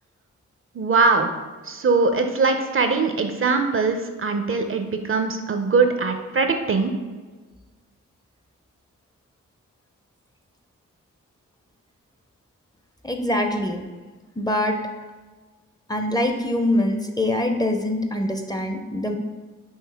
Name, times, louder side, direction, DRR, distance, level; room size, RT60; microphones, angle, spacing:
voice 1, 0.8-1.3 1.7-6.9, right 4 dB, 40° right, 6 dB, 0.5 m, -21 dB
voice 2, 13.0-13.8 14.4-14.8 15.9-19.1, left 1 dB, 10° left, 4 dB, 0.5 m, -24 dB
5.5 x 2.7 x 3.4 m, 1.3 s
cardioid pair, 55°, 32 cm